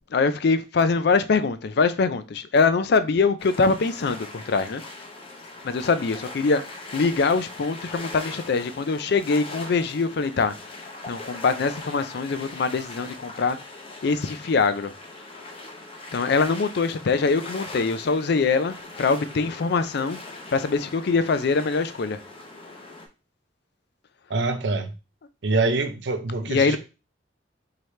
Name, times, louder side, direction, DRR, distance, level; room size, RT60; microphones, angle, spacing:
voice 1, 0.1-4.8 5.6-6.6 6.9-10.5 11.1-13.6 14.0-14.9 16.1-20.2 20.5-22.2 26.5-26.8, left 4 dB, 60° left, 0.4 m, -23 dB
sound 1, 3.4-23.1, left 2 dB, 30° left, 0.8 m, -41 dB
voice 2, 24.3-24.9 25.4-26.8, right 3 dB, 70° right, 0.6 m, -25 dB
4.7 x 2.9 x 3.2 m
head